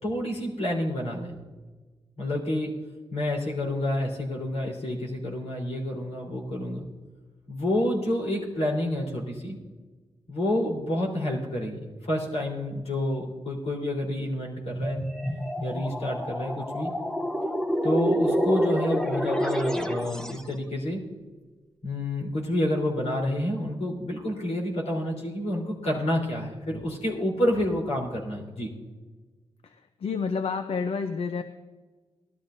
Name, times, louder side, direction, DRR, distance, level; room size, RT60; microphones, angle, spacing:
voice 1, 0.0-1.3 2.2-2.7 3.1-6.9 7.5-9.6 10.3-15.0 15.6-16.9 17.8-21.0 21.8-28.7, left 1 dB, 80° left, -2 dB, 3.8 m, -29 dB
sound 1, 14.7-20.5, equal, 5° left, 0.8 m, -28 dB
voice 2, 30.0-31.4, left 5 dB, 65° left, 8 dB, 0.6 m, -29 dB
18.0 x 13.0 x 2.6 m, 1.3 s
wide cardioid pair, 115°, 11 cm